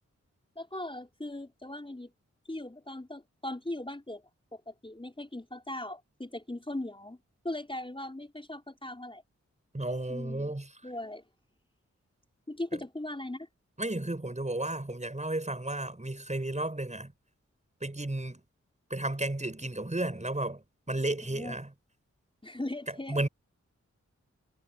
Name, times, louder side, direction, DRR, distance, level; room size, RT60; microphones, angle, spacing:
voice 1, 0.6-2.1 2.5-7.2 7.4-9.2 10.1-10.5 10.8-11.2 12.5-13.5 21.3-21.5 22.4-23.2, left 1 dB, 20° left, 4.7 m, -39 dB
voice 2, 9.7-10.7 13.8-17.1 17.8-18.4 18.9-21.7 23.1-23.3, right 2 dB, 25° right, 7.4 m, -33 dB
wide cardioid pair, 70°, 29 cm